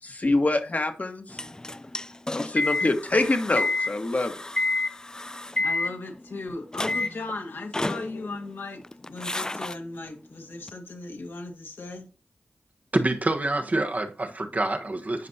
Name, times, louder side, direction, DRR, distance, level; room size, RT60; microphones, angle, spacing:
voice 1, 0.0-1.4 2.3-4.3, left 2 dB, 40° left, 1.6 m, -25 dB
sound 1, 1.3-6.4 6.7-7.3 7.7-8.5 8.8-9.7 10.7-10.8, left 2 dB, 20° left, 0.4 m, -29 dB
voice 2, 5.6-12.1, left 2 dB, 75° left, 2.1 m, -37 dB
voice 3, 12.9-15.3, right 2 dB, 45° right, 1.3 m, -26 dB
10.5 x 5.2 x 2.8 m
cardioid pair, 45°, 4 cm